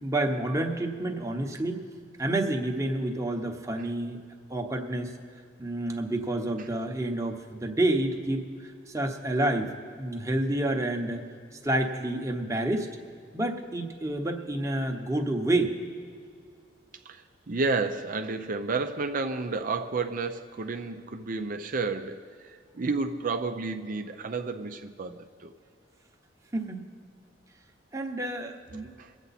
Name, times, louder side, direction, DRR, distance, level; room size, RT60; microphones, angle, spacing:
voice 1, 0.0-1.9 2.2-4.2 4.5-5.1 5.6-11.2 11.6-12.9 13.3-15.7 26.5-26.8 27.9-28.9, right 1 dB, 15° right, 2 dB, 1.0 m, -29 dB
voice 2, 17.1-25.5 29.0-29.1, right 3 dB, 45° right, 6 dB, 0.6 m, -31 dB
23.5 x 8.1 x 4.2 m, 2.1 s
head